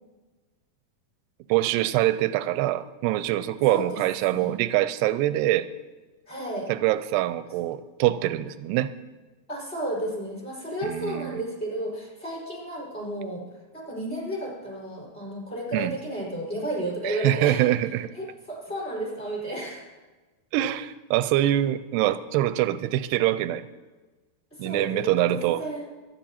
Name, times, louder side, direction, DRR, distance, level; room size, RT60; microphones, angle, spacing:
voice 1, 1.5-5.7 6.7-8.9 10.8-11.4 15.7-15.9 17.0-18.1 20.5-23.7 24.6-25.6, right 14 dB, 85° right, 14 dB, 2.7 m, -24 dB
voice 2, 6.3-6.7 9.5-13.4 13.7-17.7 18.1-19.9 24.5-25.9, right 1 dB, 15° left, -3 dB, 4.6 m, -32 dB
24.0 x 9.7 x 4.3 m, 1.3 s
omnidirectional pair, 4.7 m